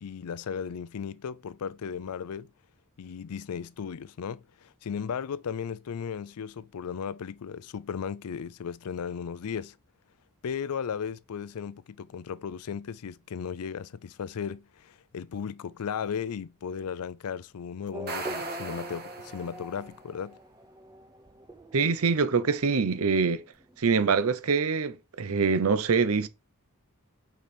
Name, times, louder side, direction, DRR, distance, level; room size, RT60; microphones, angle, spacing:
voice 1, 0.0-2.5 3.0-9.8 10.4-20.4, left 7 dB, 80° left, 0.4 m, -36 dB
Race car auto racing / Accelerating revving vroom, 17.9-24.0, right 1 dB, 15° right, 0.6 m, -43 dB
sound 1, 17.9-19.8, right 3 dB, 45° right, 1.7 m, -39 dB
voice 2, 21.7-23.4 23.8-26.3, right 5 dB, 70° right, 0.7 m, -24 dB
5.3 x 4.5 x 4.3 m
head